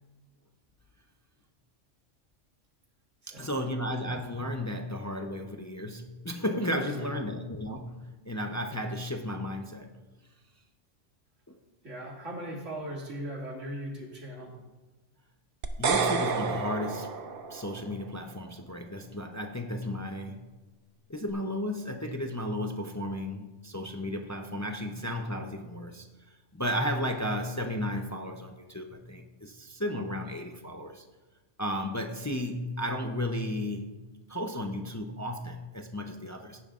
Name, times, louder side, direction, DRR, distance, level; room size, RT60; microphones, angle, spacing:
voice 1, 3.3-10.0 11.5-11.6 15.8-17.1 17.5-20.5 21.1-31.0 31.6-33.9 34.3-36.6, left 1 dB, 25° left, 4 dB, 0.4 m, -34 dB
voice 2, 6.8-7.2 11.8-14.5, right 1 dB, 75° right, -3 dB, 2.7 m, -39 dB
sound 1, 15.6-17.9, right 5 dB, 50° right, 0.9 m, -30 dB
16.0 x 10.5 x 2.5 m, 1.2 s
omnidirectional pair, 1.3 m